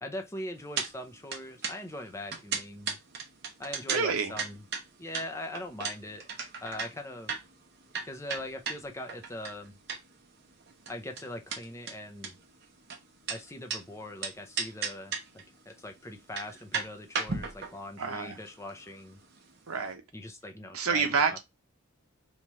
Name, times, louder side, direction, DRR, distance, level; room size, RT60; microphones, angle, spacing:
voice 1, 0.0-3.0 3.6-4.6 5.0-6.2 6.6-7.3 8.0-9.8 10.9-12.4 13.3-19.2 20.1-21.4, left 1 dB, 15° left, 0.5 m, -41 dB
sound 1, 0.8-0.9 1.2-10.2 10.5-13.8 14.2-15.4 15.7-15.8 16.2-19.6 19.9-20.0, right 5 dB, 50° right, 0.7 m, -35 dB
voice 2, 3.9-4.3 18.0-18.4 19.7-20.0 20.7-21.4, right 5 dB, 85° right, 0.8 m, -28 dB
3.1 x 2.4 x 4.1 m
head